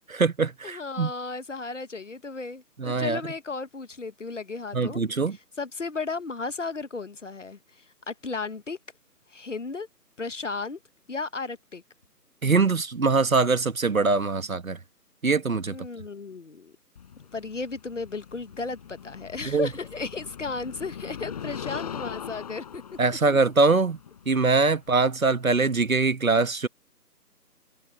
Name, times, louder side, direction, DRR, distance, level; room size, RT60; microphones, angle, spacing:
voice 1, 0.1-1.1 2.8-3.2 4.7-5.4 12.4-14.8 15.2-15.8 19.5-19.7 23.0-24.0 24.3-26.7, right 4 dB, 55° right, 1.8 m, -23 dB
voice 2, 0.6-5.0 5.6-8.8 9.3-9.9 10.2-10.8 11.1-11.8 15.7-16.8 17.2-22.8, left 4 dB, 50° left, 1.2 m, -34 dB
sound 1, 17.0-25.8, left 8 dB, 25° left, 4.9 m, -41 dB
figure-of-eight pair, 160°, 48 cm